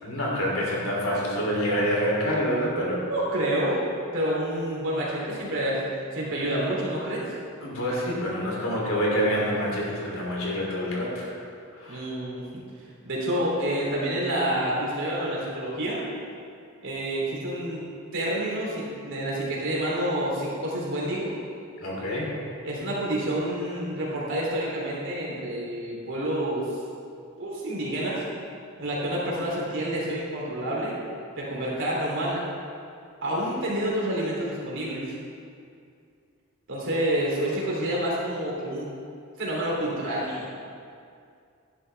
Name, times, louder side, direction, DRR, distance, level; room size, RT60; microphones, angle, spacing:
voice 1, 0.0-3.0 7.6-11.3 11.8-12.0 21.8-22.3, equal, 70° left, -4 dB, 2.9 m, -27 dB
voice 2, 3.1-3.8 4.1-5.8 6.1-7.2 11.9-12.4 13.0-16.0 16.8-17.8 18.1-21.3 22.6-26.8 27.4-28.2 28.8-31.0 31.4-32.4 33.2-35.0 36.7-38.9 39.4-40.5, right 1 dB, 60° right, -5 dB, 3.0 m, -28 dB
12.0 x 10.5 x 3.4 m, 2.4 s
head